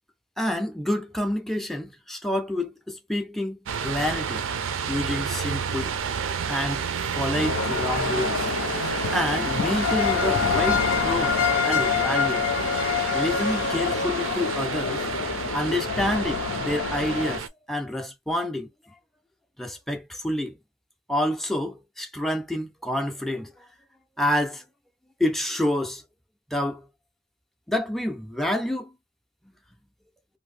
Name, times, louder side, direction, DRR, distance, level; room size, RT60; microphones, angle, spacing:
voice 1, 0.4-4.4 4.9-6.0 6.5-6.8 7.2-8.5 9.1-12.4 13.1-15.0 15.5-18.7 19.6-20.5 21.1-23.5 24.2-24.6 25.2-26.0 26.5-26.8 27.7-28.9, left 1 dB, ahead, 0.5 m, -28 dB
sound 1, 3.7-17.5, right 6 dB, 85° right, 0.5 m, -30 dB
sound 2, 7.3-17.4, left 6 dB, 80° left, 0.5 m, -26 dB
2.7 x 2.6 x 3.2 m
head